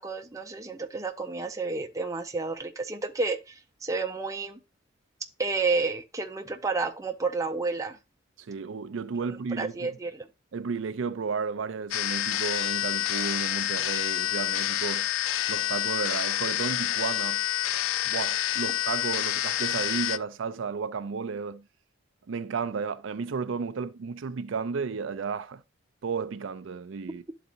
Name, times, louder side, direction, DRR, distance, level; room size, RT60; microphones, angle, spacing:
voice 1, 0.0-4.6 5.4-8.0 9.6-10.3, right 3 dB, 15° right, 0.6 m, -30 dB
voice 2, 8.4-10.0 10.5-15.1 15.5-17.4 18.0-21.7 22.3-25.6 26.0-27.2, right 5 dB, 70° right, 0.4 m, -33 dB
sound 1, 11.9-20.2, left 12 dB, 80° left, 0.3 m, -28 dB
11.5 x 4.0 x 2.5 m
head